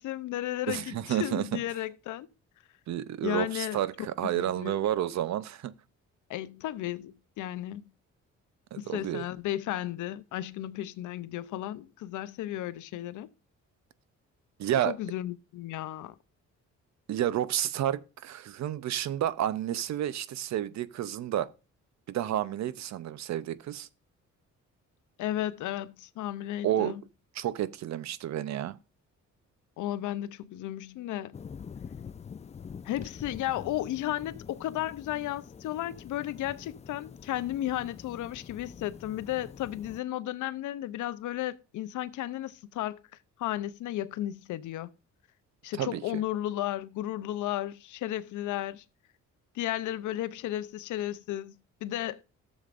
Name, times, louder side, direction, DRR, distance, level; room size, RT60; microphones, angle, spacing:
voice 1, 0.0-2.3 3.2-3.8 4.2-4.8 6.3-7.9 8.8-13.3 14.9-16.1 25.2-27.0 29.8-31.3 32.8-43.0 43.4-44.9 45.6-48.8 49.5-51.5 51.8-52.2, left 13 dB, 75° left, 0.6 m, -34 dB
voice 2, 0.7-1.6 2.9-5.7 8.7-9.2 14.6-15.0 17.1-21.5 22.1-23.9 26.6-26.9 27.4-28.8 45.8-46.0, right 11 dB, 65° right, 0.6 m, -30 dB
sound 1, 31.3-40.0, left 6 dB, 25° left, 0.4 m, -46 dB
13.5 x 7.2 x 2.5 m
cardioid pair, 90°, 30 cm